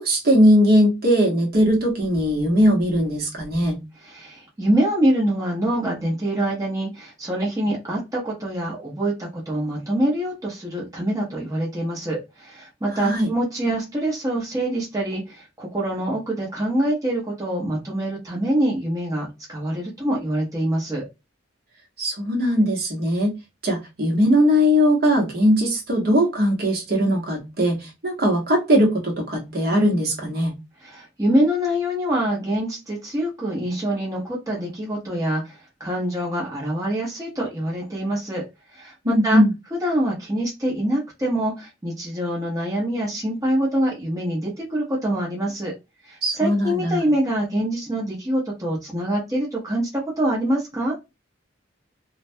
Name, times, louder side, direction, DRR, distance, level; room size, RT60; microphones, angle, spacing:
voice 1, 0.0-3.8 12.9-13.3 22.0-23.4 23.6-30.5 39.0-39.5 46.2-47.0, equal, 50° right, 0.9 m, -19 dB
voice 2, 4.0-21.0 30.8-38.4 38.7-39.4 39.8-45.7 46.1-51.0, right 1 dB, 15° right, 0.7 m, -25 dB
2.2 x 2.1 x 2.6 m
head